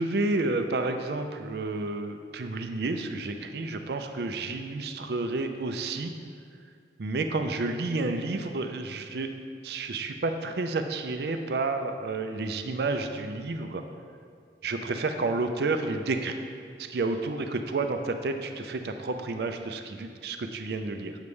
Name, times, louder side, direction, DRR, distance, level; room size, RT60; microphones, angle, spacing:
voice 1, 0.0-6.1 7.0-9.4 9.6-13.8 14.6-16.4 16.8-21.1, right 3 dB, 65° right, 6 dB, 0.4 m, -30 dB
8.1 x 6.9 x 3.2 m, 2.2 s
head